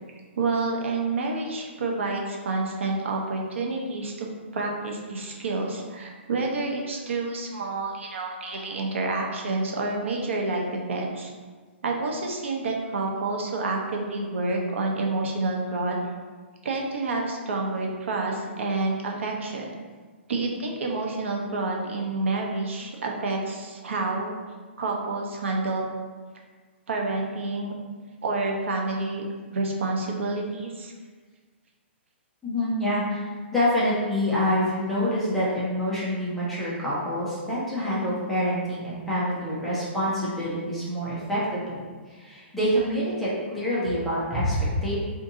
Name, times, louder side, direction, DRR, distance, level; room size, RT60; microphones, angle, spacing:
voice 1, 0.4-4.3 4.5-11.3 11.8-16.2 16.6-19.7 20.3-24.3 24.8-25.8 26.9-27.7 28.2-29.2 29.5-30.9, right 3 dB, 75° right, 0 dB, 0.7 m, -28 dB
voice 2, 32.4-44.9, equal, ahead, -10 dB, 0.4 m, -26 dB
2.6 x 2.6 x 3.7 m, 1.5 s
hypercardioid pair, 180°, 7 cm